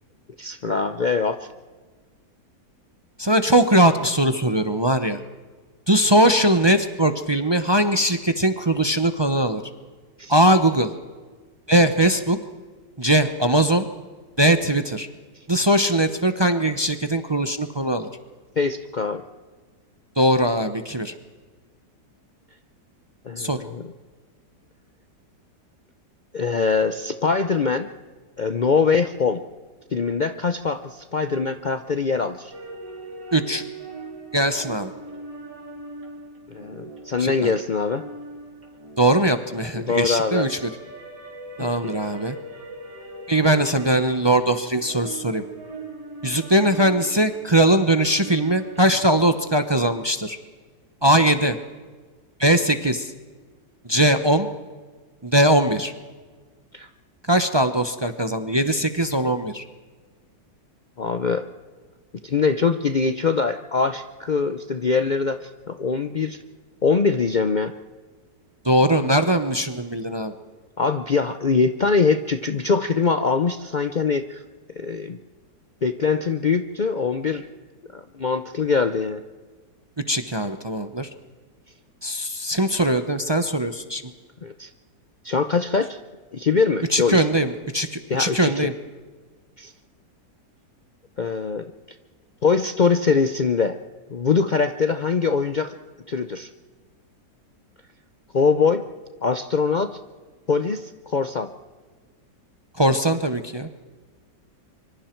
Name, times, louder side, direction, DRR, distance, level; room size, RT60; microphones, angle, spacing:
voice 1, 0.4-1.5 10.2-10.3 18.6-19.2 23.3-23.9 26.3-27.9 28.4-29.4 29.9-32.5 36.5-38.0 39.8-40.5 41.6-41.9 56.7-56.9 61.0-61.5 62.2-66.4 66.8-67.7 70.8-74.4 74.8-75.2 75.8-77.4 77.9-79.2 84.4-84.7 85.2-86.0 86.3-87.3 88.1-88.7 89.6-89.7 91.2-91.6 92.4-93.8 94.1-95.7 96.1-96.5 98.3-98.9 99.2-100.0 100.5-101.5, left 5 dB, 90° left, 9 dB, 0.4 m, -23 dB
voice 2, 3.2-5.2 5.9-9.6 10.3-10.9 11.7-12.4 13.0-13.9 14.4-15.1 15.5-18.1 20.2-21.1 23.4-23.6 33.3-33.6 34.3-34.9 37.2-37.5 39.0-40.7 41.6-42.4 43.3-45.4 46.2-50.4 51.0-51.6 52.4-53.1 53.8-54.5 55.2-55.9 57.3-59.6 68.6-70.3 80.1-81.1 82.0-84.0 86.9-88.7 102.8-103.7, right 1 dB, 25° right, 9 dB, 0.5 m, -20 dB
sound 1, 32.5-49.5, right 2 dB, 80° right, 3.7 m, -40 dB
25.0 x 24.5 x 4.5 m, 1.4 s
omnidirectional pair, 1.8 m